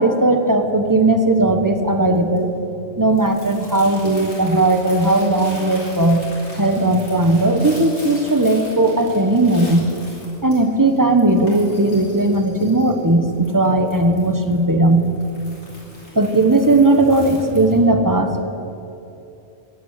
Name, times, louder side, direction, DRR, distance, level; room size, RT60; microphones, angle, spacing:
voice 1, 0.0-2.5 3.0-6.2 6.6-9.9 10.4-15.1 16.1-18.4, right 2 dB, 15° right, 6 dB, 1.1 m, -17 dB
Crumpling crinkling, 1.4-17.8, left 1 dB, 85° left, 4.7 m, -42 dB
15.0 x 9.4 x 9.6 m, 2.8 s
omnidirectional pair, 1.3 m